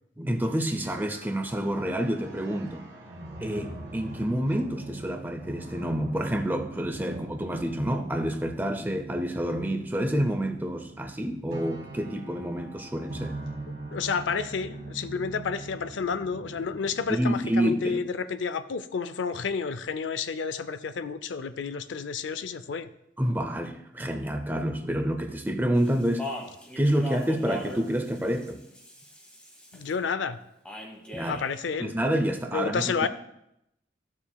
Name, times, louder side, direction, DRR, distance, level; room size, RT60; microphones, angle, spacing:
voice 1, 0.2-2.8 3.4-13.3 17.1-18.0 23.2-26.3 26.8-28.6 31.1-31.4 31.8-32.9, equal, 10° right, 7 dB, 0.5 m, -28 dB
sound 1, 0.7-17.1, right 2 dB, 60° right, 1.8 m, -42 dB
voice 2, 13.9-22.9 29.7-30.4 31.3-31.9 32.5-33.1, left 5 dB, 85° left, 13 dB, 0.5 m, -30 dB
Speech, 25.7-29.9 30.6-31.5, left 1 dB, 5° left, 1.2 m, -40 dB
13.5 x 7.1 x 2.3 m, 0.81 s
head